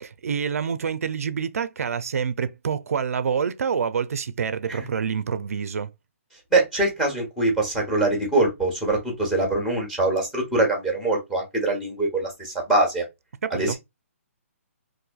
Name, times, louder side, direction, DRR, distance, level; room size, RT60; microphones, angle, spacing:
voice 1, 0.0-5.9 13.4-13.7, right 6 dB, 80° right, 0.4 m, -27 dB
voice 2, 6.5-13.0 13.5-13.7, right 2 dB, ahead, 0.8 m, -23 dB
4.0 x 2.6 x 2.2 m
hypercardioid pair, 170°, 8 cm